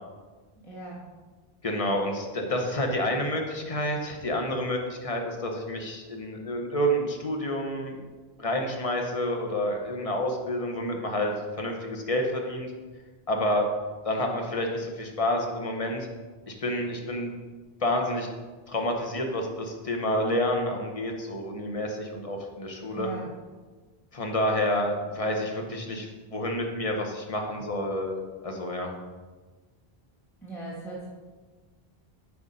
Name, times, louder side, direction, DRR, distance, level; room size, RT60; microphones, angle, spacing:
voice 1, 0.6-1.0 22.9-23.3 30.4-31.1, right 3 dB, ahead, -6 dB, 1.2 m, -38 dB
voice 2, 1.6-8.0 8.4-12.7 13.3-13.7 14.0-16.1 16.5-17.4 17.8-18.3 18.7-23.1 24.1-28.2 28.4-28.9, left 1 dB, 35° left, 2 dB, 0.9 m, -29 dB
8.3 x 3.7 x 5.3 m, 1.4 s
omnidirectional pair, 1.0 m